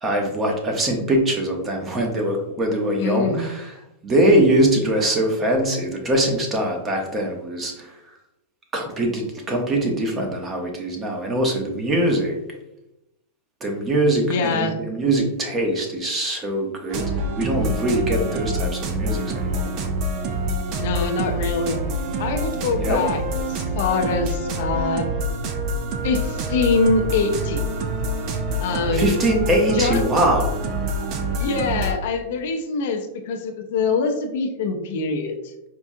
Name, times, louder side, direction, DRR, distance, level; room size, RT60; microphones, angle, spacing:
voice 1, 0.0-3.7 4.0-8.1 8.7-12.4 13.6-17.1 17.4-19.7 22.8-23.0 28.9-30.8, right 1 dB, 20° right, 2 dB, 0.8 m, -22 dB
voice 2, 3.0-3.4 14.3-14.7 20.8-21.8 22.2-25.1 26.0-27.6 28.6-29.1 29.7-30.0 31.4-35.4, left 4 dB, 65° left, 5 dB, 0.5 m, -24 dB
sound 1, 16.9-32.0, right 1 dB, 45° right, 0.5 m, -26 dB
4.5 x 2.3 x 2.6 m, 0.86 s
hypercardioid pair, 125°, 0 cm